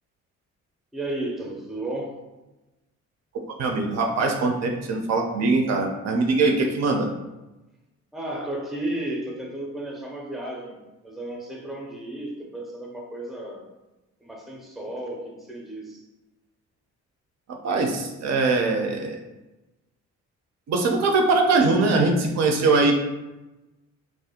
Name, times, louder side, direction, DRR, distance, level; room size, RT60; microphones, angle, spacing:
voice 1, 0.9-2.2 6.5-6.6 8.1-13.7 14.2-16.0, right 1 dB, ahead, -1 dB, 0.5 m, -33 dB
voice 2, 3.6-7.1 17.6-19.2 20.7-22.9, right 3 dB, 60° right, 2 dB, 0.5 m, -22 dB
2.4 x 2.1 x 2.7 m, 1.0 s
cardioid pair, 90°, 30 cm